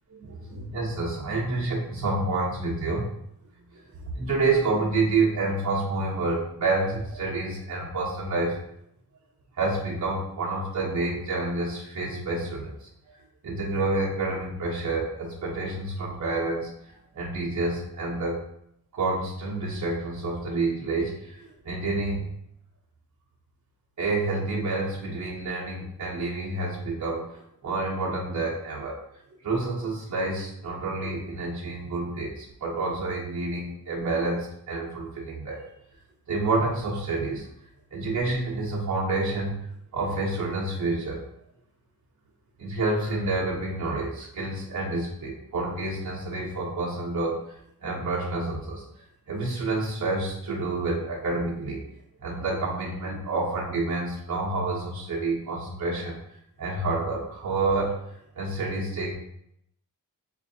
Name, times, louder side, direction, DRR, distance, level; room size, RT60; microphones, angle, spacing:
voice 1, 0.1-3.1 3.7-8.6 9.6-12.9 13.4-18.4 18.9-22.2 24.0-29.0 29.4-35.6 36.3-37.5 37.9-39.5 39.9-41.2 42.6-47.4 47.8-48.8 49.3-51.8 52.2-56.2 56.6-58.0 58.3-59.1, right 2 dB, 50° right, -5 dB, 0.9 m, -28 dB
4.4 x 2.6 x 2.7 m, 0.74 s
wide cardioid pair, 90°, 37 cm